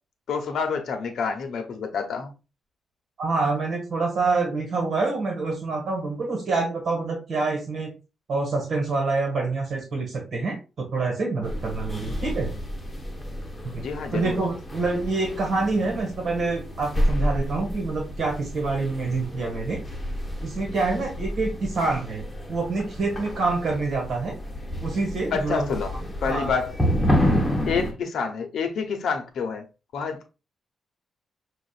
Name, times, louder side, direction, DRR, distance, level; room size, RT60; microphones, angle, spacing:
voice 1, 0.3-2.3 13.8-14.4 25.3-25.9 26.2-26.8 27.3-29.7 29.9-30.3, left 5 dB, 75° left, 0.9 m, -28 dB
voice 2, 3.2-7.9 8.3-12.5 13.6-13.8 14.1-19.8 20.4-24.3 24.8-25.7 26.2-26.5, right 3 dB, 60° right, 1.6 m, -26 dB
sound 1, 11.4-27.9, equal, 10° left, 1.1 m, -29 dB
6.3 x 2.5 x 2.4 m
cardioid pair, 100°, 0 cm